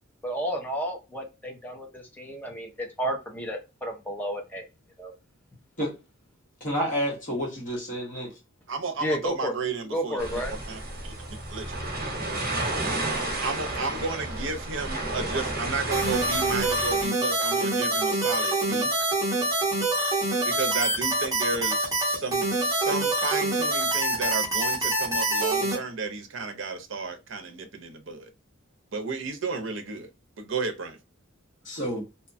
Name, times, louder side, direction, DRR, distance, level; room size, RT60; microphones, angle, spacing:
voice 1, 0.2-4.6 5.0-5.1 9.0-9.5 9.9-10.5, equal, 10° left, 0.6 m, -31 dB
voice 2, 6.6-8.3 31.7-32.0, equal, 40° left, 1.1 m, -29 dB
voice 3, 8.7-10.4 10.7-11.1 11.5-11.6 13.4-18.9 20.4-28.3 28.9-30.1 30.4-31.0, right 4 dB, 65° right, 0.6 m, -33 dB
sound 1, 10.2-17.1, right 2 dB, 50° right, 1.0 m, -32 dB
sound 2, 15.9-25.8, right 2 dB, 15° right, 0.9 m, -25 dB
2.7 x 2.2 x 2.5 m
head